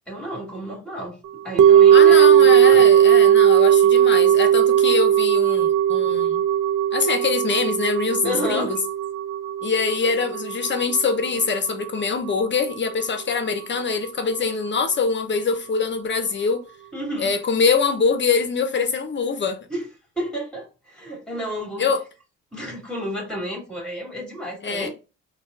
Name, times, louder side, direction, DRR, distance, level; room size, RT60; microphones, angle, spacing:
voice 1, 0.1-1.2 1.4-2.8 8.2-8.7 16.9-17.3 19.7-19.8 20.2-21.9 22.5-24.9, equal, 5° left, 2.3 m, -31 dB
sound 1, 1.6-11.9 12.1-12.2, right 10 dB, 80° right, 0.5 m, -17 dB
voice 2, 1.9-6.4 6.9-8.8 9.6-16.6 17.2-19.7 21.8-22.0 24.6-24.9, left 5 dB, 40° left, 0.7 m, -24 dB
3.9 x 2.3 x 3.8 m
cardioid pair, 90°, 30 cm